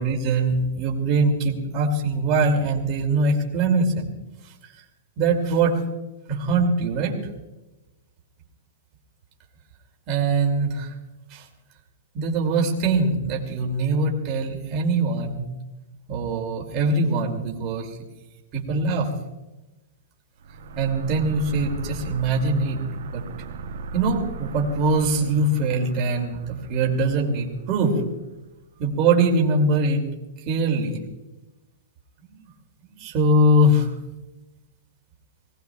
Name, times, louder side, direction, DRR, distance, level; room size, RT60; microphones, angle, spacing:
voice 1, 0.0-4.1 5.2-5.8 6.3-7.2 10.1-10.9 11.3-11.4 12.1-15.5 16.1-17.9 18.5-19.1 20.8-22.8 23.1-23.2 23.9-28.0 28.8-30.1 30.5-31.0 33.0-33.9, right 2 dB, 25° right, 0 dB, 2.6 m, -22 dB
sound 1, 20.4-28.7, right 3 dB, 75° right, 1.6 m, -38 dB
25.0 x 18.5 x 2.3 m, 1.0 s
supercardioid pair, 170°, 0 cm